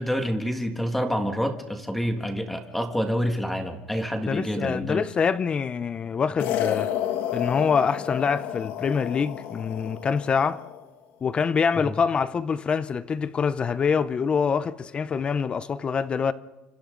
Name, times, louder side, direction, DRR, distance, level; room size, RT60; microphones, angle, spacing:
voice 1, 0.0-5.0 11.8-12.0, equal, 5° left, 1.7 m, -27 dB
voice 2, 4.3-6.9 7.3-10.7 11.2-16.3, left 6 dB, 25° left, 0.6 m, -25 dB
sound 1, 6.4-10.9, left 11 dB, 65° left, 2.3 m, -31 dB
29.0 x 25.5 x 3.9 m
cardioid pair, 140°, 4 cm